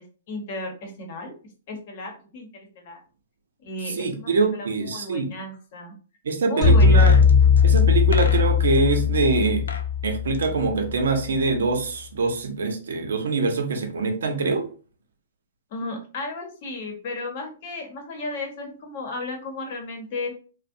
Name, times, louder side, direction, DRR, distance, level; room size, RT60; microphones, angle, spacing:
voice 1, 0.0-1.3 1.7-3.0 3.6-5.9 6.4-7.1 15.7-20.3, left 2 dB, 55° left, 3 dB, 0.8 m, -34 dB
voice 2, 3.9-5.3 6.2-7.1 7.6-9.7 10.0-14.7, right 4 dB, 75° right, 5 dB, 0.6 m, -24 dB
sound 1, 6.6-11.0, left 5 dB, 25° left, 0.9 m, -18 dB
sound 2, 6.8-8.8 9.5-9.9 10.2-11.6 11.8-11.9, left 4 dB, 90° left, 0.4 m, -38 dB
2.5 x 2.1 x 2.5 m, 0.38 s
hypercardioid pair, 130°, 0 cm